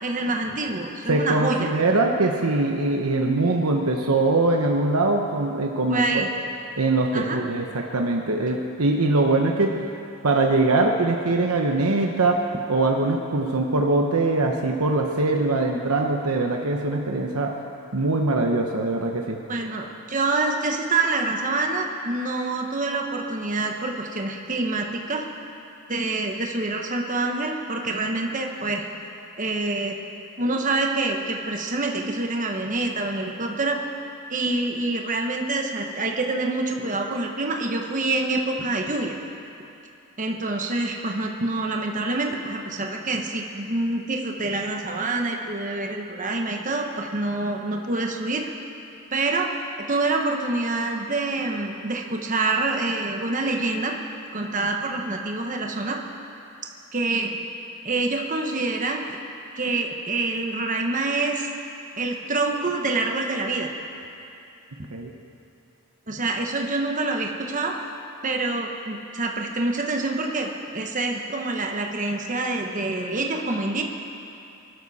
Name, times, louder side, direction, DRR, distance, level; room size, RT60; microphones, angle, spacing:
voice 1, 0.0-1.7 5.9-6.3 7.1-7.4 19.5-25.3 25.9-28.9 29.4-30.0 30.4-33.8 34.3-39.1 40.2-48.4 49.1-49.5 49.9-54.0 54.3-56.0 56.9-57.5 57.8-59.2 59.5-61.5 62.0-63.7 66.1-67.7 68.2-73.8, right 2 dB, 35° right, 2 dB, 1.1 m, -26 dB
voice 2, 1.1-6.3 6.8-9.8 10.2-17.6 17.9-19.4 64.9-65.1, right 2 dB, 90° right, 2 dB, 1.0 m, -22 dB
23.0 x 12.5 x 4.2 m, 2.7 s
head